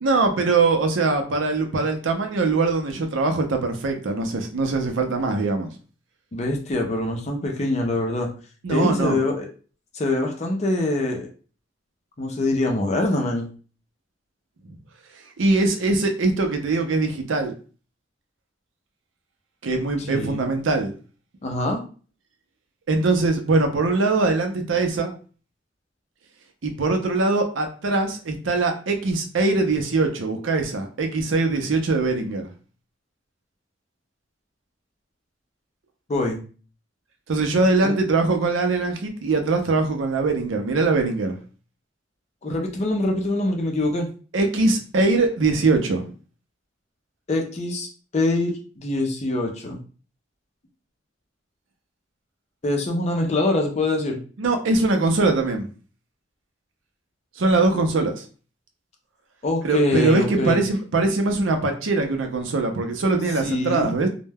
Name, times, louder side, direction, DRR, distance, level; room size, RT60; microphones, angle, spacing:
voice 1, 0.0-5.7 8.6-9.2 14.7-14.8 15.4-17.5 19.6-20.9 22.9-25.1 26.6-32.5 37.3-41.4 44.3-46.1 54.4-55.7 57.4-58.2 59.6-64.1, right 3 dB, 85° right, 5 dB, 0.5 m, -22 dB
voice 2, 6.3-8.3 8.7-9.5 9.9-11.3 12.2-13.5 20.1-20.4 21.4-21.8 36.1-36.4 37.8-37.9 42.4-44.1 47.3-47.9 48.1-49.8 52.6-54.2 59.4-60.6 63.4-63.9, left 2 dB, 35° left, 2 dB, 0.5 m, -24 dB
2.1 x 2.1 x 3.3 m, 0.38 s
head